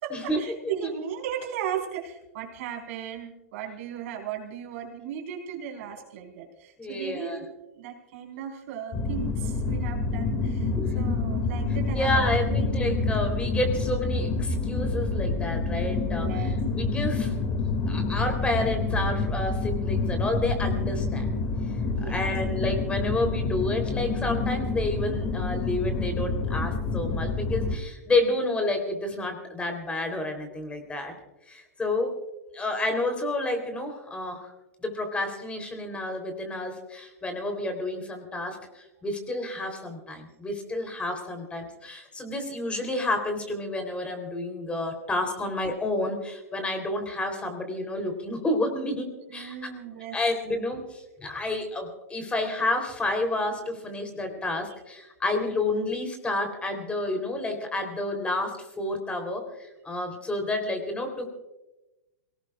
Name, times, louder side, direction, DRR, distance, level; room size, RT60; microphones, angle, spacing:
voice 1, 0.0-7.5 7.7-13.0 16.1-16.6 21.9-22.3 49.3-50.2, right 8 dB, 60° right, 0 dB, 4.7 m, -36 dB
voice 2, 6.8-7.4 10.8-11.0 11.9-17.6 17.9-21.3 22.1-31.1 31.5-32.1 32.5-34.5 34.8-49.6 50.1-61.2, left 2 dB, 15° left, 5 dB, 3.7 m, -30 dB
sound 1, 8.9-27.8, left 3 dB, 30° left, 2.5 m, -27 dB
27.5 x 18.5 x 2.5 m, 1.0 s
hypercardioid pair, 115°, 8 cm